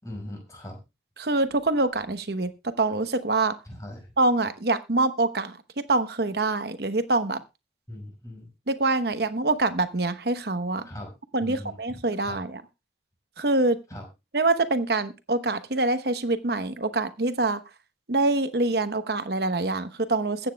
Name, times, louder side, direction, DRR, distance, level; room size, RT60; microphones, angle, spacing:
voice 1, 0.0-0.8 3.7-4.1 7.9-8.5 10.8-11.1 11.4-12.4 13.9-14.0, left 1 dB, 20° left, 1 dB, 5.4 m, -40 dB
voice 2, 1.2-3.5 4.2-7.4 8.7-10.9 11.3-12.6 13.4-13.8 14.3-17.6 18.1-20.5, right 2 dB, 60° right, 11 dB, 1.0 m, -25 dB
22.0 x 9.0 x 2.3 m, 0.26 s
head